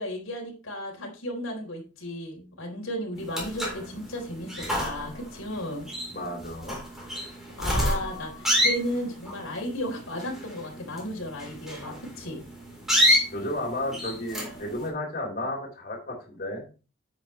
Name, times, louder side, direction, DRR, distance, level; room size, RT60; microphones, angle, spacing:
voice 1, 0.0-5.9 7.6-12.4, left 1 dB, 85° left, 0 dB, 4.1 m, -34 dB
sound 1, 3.2-14.9, equal, ahead, 4.0 m, -29 dB
voice 2, 6.1-6.8 13.3-16.7, left 1 dB, 45° left, -1 dB, 3.8 m, -33 dB
10.5 x 8.5 x 3.3 m, 0.33 s
head